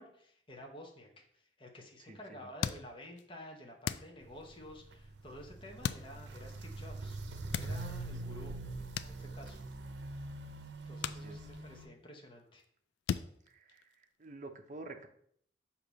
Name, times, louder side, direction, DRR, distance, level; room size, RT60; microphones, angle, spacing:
voice 1, 0.0-7.2 7.4-8.5 9.0-9.6 10.8-12.6, left 1 dB, 30° left, 1 dB, 0.9 m, -51 dB
voice 2, 2.0-2.5 8.8-8.9 11.0-11.5 13.5-15.1, right 2 dB, 45° right, 6 dB, 0.6 m, -50 dB
sound 1, 2.6-3.3 3.8-4.6 5.8-6.5 7.4-8.1 9.0-9.8 10.1-10.3 11.0-11.9 12.2-12.7 13.1-14.3, left 8 dB, 85° left, 0.3 m, -39 dB
Walk footsteps, 4.2-11.9, right 2 dB, 80° right, 0.6 m, -44 dB
6.6 x 2.8 x 5.1 m, 0.64 s
head